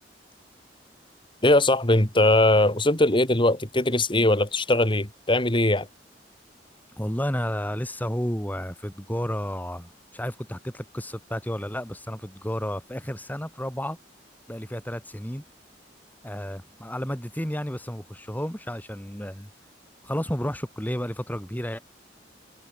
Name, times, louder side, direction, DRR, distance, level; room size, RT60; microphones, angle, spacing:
voice 1, 1.4-5.9, left 1 dB, 30° left, 3.4 m, -20 dB
voice 2, 7.0-14.0 14.5-15.4 16.2-19.5 20.0-21.8, equal, 10° left, 5.4 m, -32 dB
head